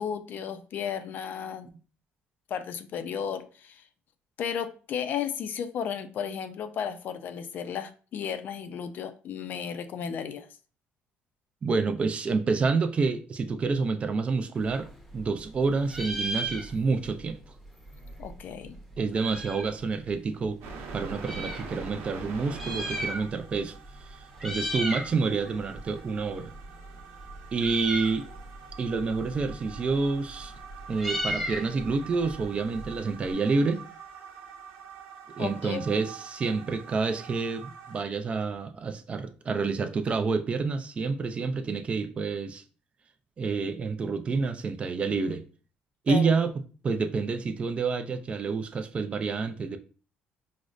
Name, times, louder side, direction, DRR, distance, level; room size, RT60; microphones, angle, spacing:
voice 1, 0.0-1.7 2.5-3.8 4.4-10.5 18.2-18.8 35.4-36.0 46.1-46.3, left 7 dB, 55° left, 0.4 m, -34 dB
voice 2, 11.6-17.4 19.0-20.6 20.9-23.8 24.1-26.5 27.5-28.3 28.8-30.5 30.9-33.8 35.4-42.6 43.4-45.4 46.1-46.5 46.8-49.8, right 4 dB, 30° right, 0.4 m, -28 dB
Meow, 14.6-15.6 15.8-17.1 17.4-17.5 17.7-19.8 20.4-21.6 22.4-23.6 23.9-24.1 24.3-25.1 25.5-33.3, right 1 dB, ahead, 0.7 m, -36 dB
sound 1, 20.6-38.0, right 5 dB, 80° right, 0.9 m, -45 dB
5.0 x 2.0 x 2.4 m
cardioid pair, 125°, 4 cm